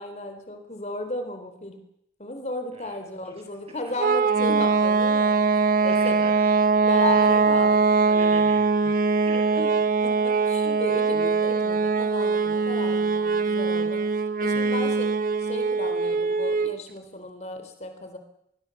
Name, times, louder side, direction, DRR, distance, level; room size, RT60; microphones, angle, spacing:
voice 1, 0.0-1.8 2.2-5.4 5.8-6.2 6.8-7.8 9.6-9.7 10.0-14.0 14.4-15.1 15.4-18.2, left 2 dB, 40° left, 6 dB, 3.9 m, -34 dB
sound 1, 4.0-16.8, right 4 dB, 50° right, 0.9 m, -22 dB
voice 2, 5.9-6.8 7.0-9.6 14.5-14.8, right 2 dB, 35° right, 3 dB, 7.2 m, -42 dB
25.5 x 22.0 x 7.2 m, 0.77 s
head